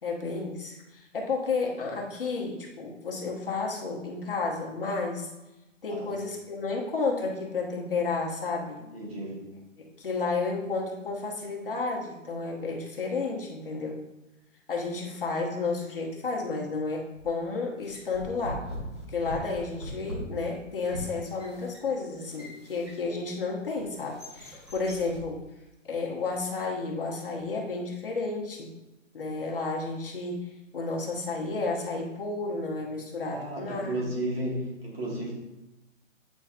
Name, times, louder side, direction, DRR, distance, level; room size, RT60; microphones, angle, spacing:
voice 1, 0.0-5.3 5.8-8.8 9.8-14.0 14.7-18.6 19.1-25.4 25.9-28.7 29.1-34.0, left 3 dB, 45° left, -2 dB, 1.1 m, -32 dB
voice 2, 5.9-6.2 8.8-9.5 33.3-35.4, right 1 dB, 45° right, -3 dB, 1.9 m, -34 dB
sound 1, 17.2-17.4 17.8-23.3 23.8-25.3, equal, 20° right, 0.8 m, -41 dB
8.7 x 4.4 x 2.5 m, 1.0 s
hypercardioid pair, 180°, 39 cm